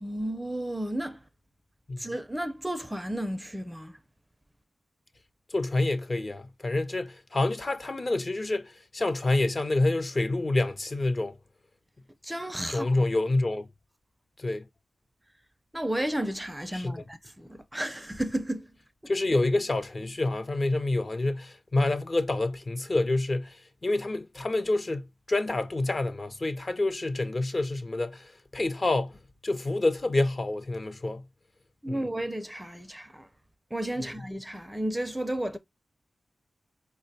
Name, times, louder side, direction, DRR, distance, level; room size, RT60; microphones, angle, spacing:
voice 1, 0.0-1.2 2.0-4.0 12.2-12.9 15.7-18.7 31.8-33.3 33.7-35.6, right 1 dB, 10° right, 0.4 m, -33 dB
voice 2, 5.5-11.4 12.7-13.7 14.4-14.6 16.7-17.0 19.1-31.2 31.9-32.1 34.0-34.1, left 2 dB, 45° left, 0.6 m, -28 dB
4.3 x 2.2 x 2.6 m
cardioid pair, 55°, 0 cm